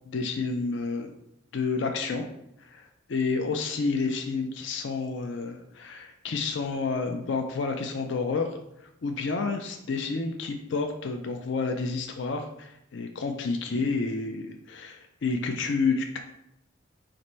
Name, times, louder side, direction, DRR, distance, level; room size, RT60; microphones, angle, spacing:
voice 1, 0.1-1.1 1.5-2.2 2.6-16.2, left 4 dB, 60° left, 5 dB, 0.4 m, -30 dB
4.1 x 2.5 x 4.3 m, 0.79 s
head